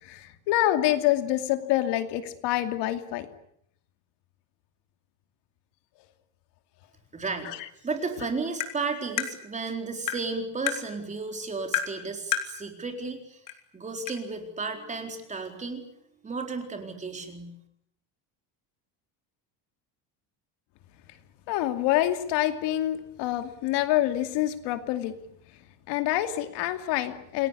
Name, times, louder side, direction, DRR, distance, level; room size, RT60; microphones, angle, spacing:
voice 1, 0.0-3.3 7.4-7.6 21.5-25.1 25.9-27.5, left 14 dB, 75° left, 8 dB, 2.7 m, -26 dB
voice 2, 7.1-7.5 7.8-13.4 13.7-15.8 16.2-17.6, right 4 dB, 15° right, 4 dB, 4.2 m, -33 dB
Tap, 8.6-8.7 9.2-9.3 10.1-10.2 10.7-10.8 11.7-11.9 12.3-12.5 13.5-13.6 14.1-14.2, left 11 dB, 50° left, 3.8 m, -28 dB
29.0 x 20.5 x 8.5 m, 0.73 s
cardioid pair, 170°, 41 cm